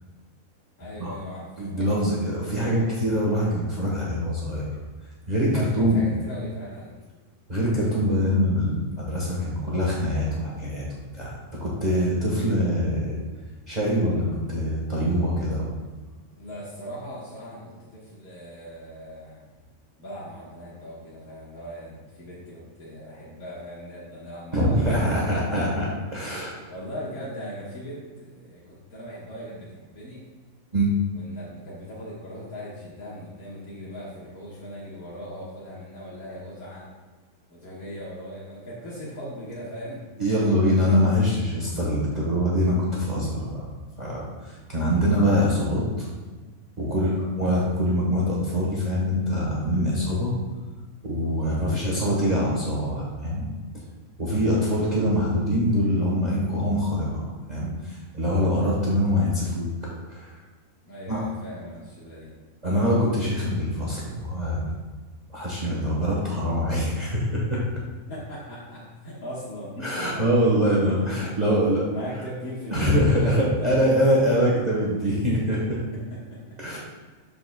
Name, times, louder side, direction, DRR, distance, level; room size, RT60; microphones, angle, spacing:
voice 1, 0.8-1.9 5.5-7.0 16.3-19.4 20.0-25.9 26.7-30.3 31.1-36.9 37.5-40.0 46.9-47.3 51.4-51.8 60.8-62.3 68.1-70.2 71.1-71.6 71.9-73.9 75.9-76.6, equal, 80° left, -8 dB, 1.9 m, -39 dB
voice 2, 1.6-4.7 5.3-6.0 7.5-10.8 11.1-13.2 13.7-15.7 24.5-26.5 30.7-30.9 40.2-43.7 44.0-46.1 46.8-50.3 51.0-53.4 54.2-60.4 61.1-61.2 62.6-64.7 65.3-67.6 69.8-71.9 72.7-75.8 76.6-76.8, equal, 30° right, -6 dB, 1.3 m, -24 dB
12.0 x 4.8 x 2.2 m, 1.4 s
omnidirectional pair, 1.5 m